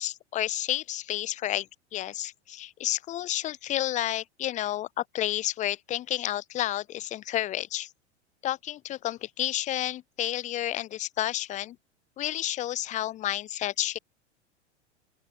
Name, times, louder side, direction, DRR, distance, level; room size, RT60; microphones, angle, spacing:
voice 1, 0.0-7.9 8.4-11.8 12.2-14.0, left 13 dB, 20° left, 0.5 m, -31 dB
open air
figure-of-eight pair, 95°, 35 cm